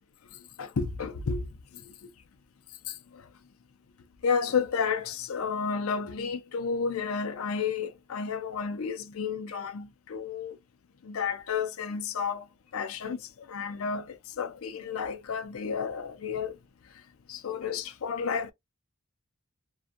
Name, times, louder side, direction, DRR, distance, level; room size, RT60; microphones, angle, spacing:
voice 1, 0.6-1.5 2.9-3.2 4.2-10.6 11.0-12.4 12.7-16.6 17.3-18.5, left 6 dB, 70° left, 0.5 m, -31 dB
2.5 x 2.3 x 2.4 m
head